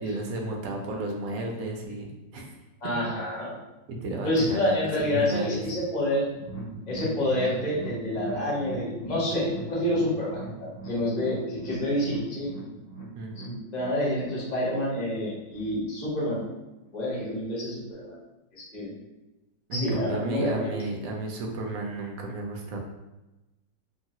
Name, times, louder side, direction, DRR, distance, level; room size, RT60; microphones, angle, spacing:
voice 1, 0.0-2.4 4.0-5.7 13.2-13.5 19.7-22.8, right 2 dB, 75° right, 1 dB, 0.8 m, -32 dB
voice 2, 2.8-3.6 4.2-6.3 6.9-12.5 13.4-16.4 16.9-18.2 18.5-19.0 19.7-20.7, left 1 dB, 35° left, -6 dB, 0.7 m, -28 dB
sound 1, 6.3-15.6 15.9-16.0 16.4-16.5, right 2 dB, 85° left, 1.5 m, -41 dB
3.0 x 2.3 x 2.7 m, 1.0 s
omnidirectional pair, 1.9 m